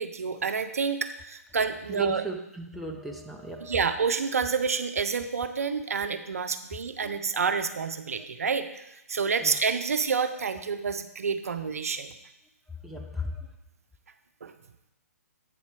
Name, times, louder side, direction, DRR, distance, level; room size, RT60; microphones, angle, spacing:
voice 1, 0.0-2.2 3.6-12.1 14.4-14.5, right 5 dB, 60° right, 9 dB, 0.6 m, -28 dB
voice 2, 1.9-3.8 7.0-7.2 9.4-9.6 12.8-13.5, right 1 dB, ahead, 0 dB, 0.5 m, -36 dB
8.3 x 4.3 x 5.7 m, 0.85 s
figure-of-eight pair, 130°, 9 cm